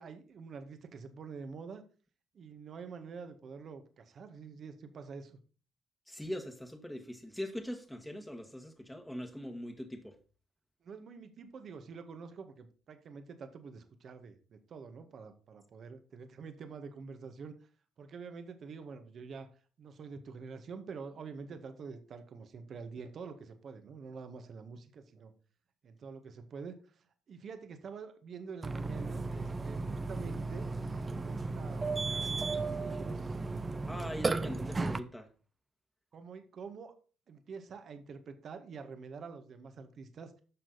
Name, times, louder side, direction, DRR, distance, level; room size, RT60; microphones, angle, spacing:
voice 1, 0.0-1.8 2.3-5.4 10.8-17.5 18.0-19.5 19.8-25.3 25.8-33.4 36.1-36.9 37.3-40.3, right 5 dB, 55° right, 7 dB, 1.8 m, -47 dB
voice 2, 6.1-10.2 33.9-35.3, equal, 5° left, 3 dB, 1.9 m, -41 dB
Burping eructation, 28.6-35.0, right 3 dB, 25° right, 0.7 m, -35 dB
11.5 x 6.2 x 4.2 m, 0.38 s
hypercardioid pair, 60°, 0 cm